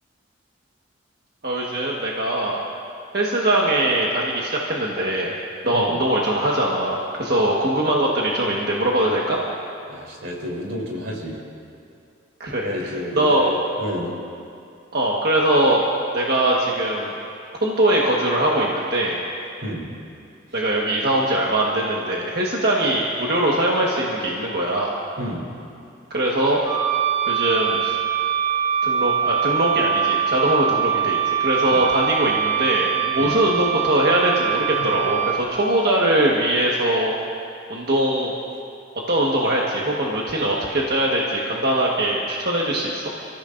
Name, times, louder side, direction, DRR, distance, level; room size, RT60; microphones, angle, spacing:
voice 1, 1.4-2.6 3.1-5.3 5.6-9.4 12.4-13.5 14.9-15.8 16.1-17.1 17.6-19.2 20.5-25.0 26.1-26.6 27.3-27.9 28.8-37.1 37.7-38.3 39.1-43.0, right 1 dB, 55° right, -4 dB, 1.5 m, -21 dB
voice 2, 9.9-11.4 12.6-14.1 19.6-19.9 25.2-25.4 31.7-31.8 33.2-33.4 34.7-34.8, equal, 85° right, -3 dB, 3.5 m, -30 dB
Wind instrument woodwind instrument, 26.6-35.4, right 8 dB, 25° right, 3.8 m, -23 dB
30.0 x 15.0 x 2.6 m, 2.5 s
head